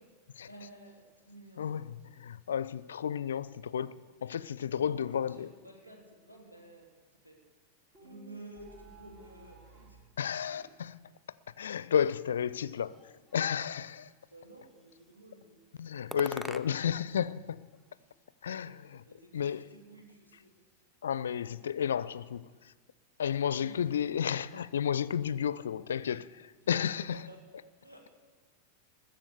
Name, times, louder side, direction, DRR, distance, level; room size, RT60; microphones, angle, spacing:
voice 1, 0.0-1.9 4.7-7.4 8.0-10.2 10.5-10.7 14.3-15.6 17.9-18.1 18.5-20.6 23.5-23.9 26.8-28.3, right 1 dB, 85° right, 2.9 m, -53 dB
voice 2, 2.2-5.5 10.2-10.9 11.6-14.1 15.8-17.6 18.4-19.0 19.3-19.6 21.0-22.7 23.2-27.1, left 8 dB, 65° left, 0.4 m, -32 dB
sound 1, 7.9-10.1, right 5 dB, 40° right, 2.2 m, -55 dB
sound 2, 12.9-13.9 14.6-15.2 16.1-17.0 17.3-18.4, right 1 dB, 5° right, 0.6 m, -46 dB
20.5 x 7.4 x 6.7 m
figure-of-eight pair, 90°, 0 cm